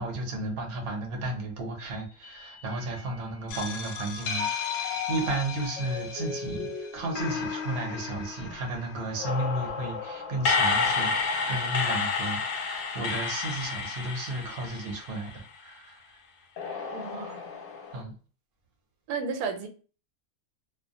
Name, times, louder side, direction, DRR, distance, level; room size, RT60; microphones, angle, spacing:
voice 1, 0.0-16.0 17.9-18.1, right 2 dB, 50° right, 0.7 m, -33 dB
Mallet percussion, 2.1-3.2 3.5-8.9, left 7 dB, 65° left, 0.8 m, -37 dB
sound 1, 3.5-6.7 7.1-15.5 16.6-18.0, left 4 dB, 90° left, 1.1 m, -32 dB
voice 2, 16.9-17.5 19.1-19.7, right 5 dB, 85° right, 1.1 m, -33 dB
2.3 x 2.1 x 2.5 m
omnidirectional pair, 1.5 m